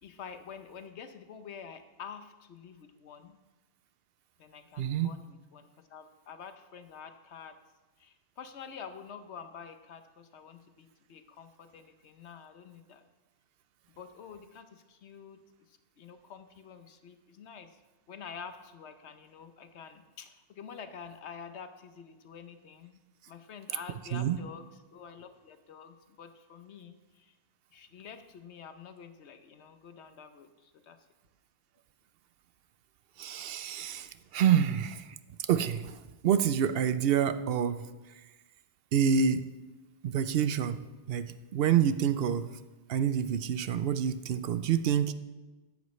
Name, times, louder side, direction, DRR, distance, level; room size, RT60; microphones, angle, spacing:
voice 1, 0.0-3.4 4.4-7.6 8.0-13.0 14.0-15.4 15.7-17.8 18.1-23.0 23.3-27.3 27.7-31.0, left 6 dB, 85° left, 9 dB, 1.1 m, -48 dB
voice 2, 4.8-5.1 24.1-24.4 33.2-35.1 35.5-36.0 36.2-37.8 38.9-39.5 40.0-42.5 42.9-45.1, right 8 dB, 65° right, 12 dB, 0.8 m, -27 dB
14.0 x 10.5 x 3.2 m, 1.2 s
omnidirectional pair, 1.1 m